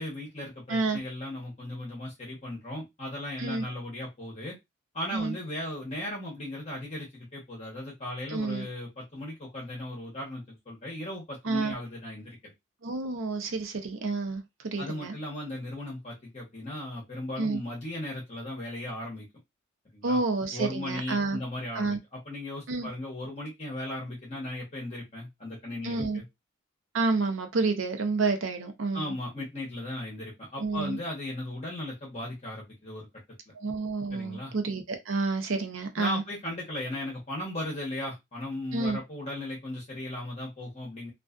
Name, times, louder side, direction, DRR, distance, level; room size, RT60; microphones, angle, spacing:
voice 1, 0.0-4.6 4.9-12.5 14.8-19.3 19.9-20.2 20.5-26.2 28.9-33.1 34.1-34.5 36.0-41.1, left 1 dB, 30° left, 0.9 m, -37 dB
voice 2, 8.3-8.7 11.4-11.7 12.8-15.1 17.4-17.6 20.0-21.4 21.7-22.0 22.7-22.9 25.8-26.2 26.9-29.1 30.6-31.0 33.5-36.2 38.7-39.0, right 3 dB, 80° right, 0.6 m, -29 dB
2.4 x 2.3 x 2.3 m
head